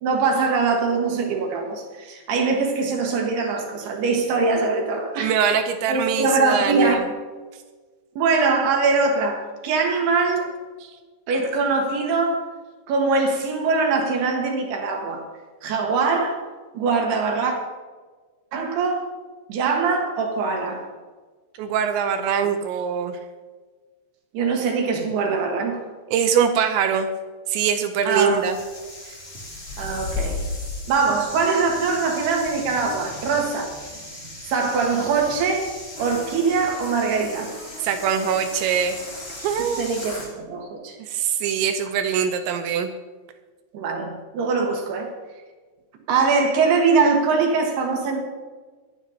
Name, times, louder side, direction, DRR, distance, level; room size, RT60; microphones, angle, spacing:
voice 1, 0.0-5.3 5.9-7.1 8.2-10.5 11.3-12.4 12.9-15.2 15.6-16.4 16.7-17.5 18.5-19.1 19.5-20.9 24.3-25.8 28.1-28.4 29.8-30.4 30.9-33.7 34.5-35.7 36.0-37.5 39.7-41.0 43.7-45.1 46.1-48.2, right 4 dB, 65° right, 1 dB, 3.4 m, -22 dB
voice 2, 5.2-7.0 21.6-23.2 26.1-27.1 27.5-28.6 37.8-39.0 39.4-39.9 41.0-42.9, right 7 dB, 80° right, 7 dB, 2.9 m, -23 dB
sound 1, 28.3-40.3, left 2 dB, 30° left, 1.2 m, -36 dB
24.5 x 9.4 x 2.9 m, 1.4 s
omnidirectional pair, 5.4 m